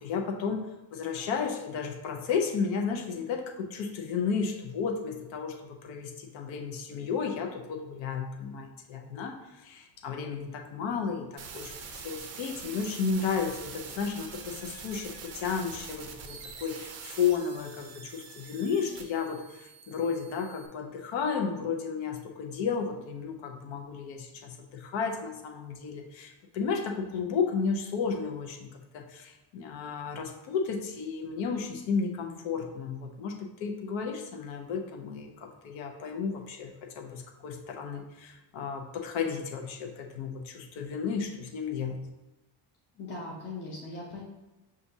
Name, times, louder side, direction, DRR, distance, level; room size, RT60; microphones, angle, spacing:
voice 1, 0.0-36.7 37.0-42.0, left 6 dB, 90° left, 3 dB, 0.8 m, -33 dB
sound 1, 11.4-20.7, right 6 dB, 35° right, 0.4 m, -45 dB
voice 2, 43.0-44.2, left 2 dB, 25° left, -5 dB, 0.6 m, -39 dB
7.0 x 2.5 x 2.7 m, 1.0 s
cardioid pair, 155°, 45 cm